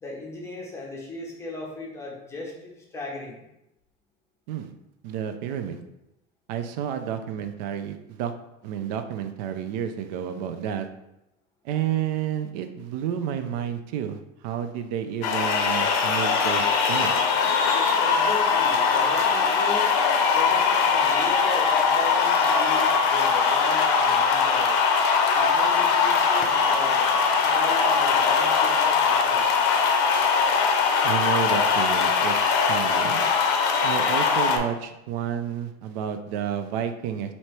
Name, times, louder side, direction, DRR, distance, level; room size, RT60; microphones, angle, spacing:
voice 1, 0.0-3.4 18.0-19.9 20.3-24.8 25.3-27.1 27.4-29.5, left 2 dB, 15° left, -2 dB, 0.7 m, -37 dB
voice 2, 5.0-5.8 6.5-8.3 8.6-10.9 11.6-17.1 31.0-32.4 32.7-33.2 33.8-37.3, right 9 dB, 85° right, 8 dB, 0.5 m, -30 dB
sound 1, 15.2-34.6, left 5 dB, 60° left, 0.6 m, -21 dB
3.1 x 2.8 x 4.3 m, 0.87 s
cardioid pair, 175°, 21 cm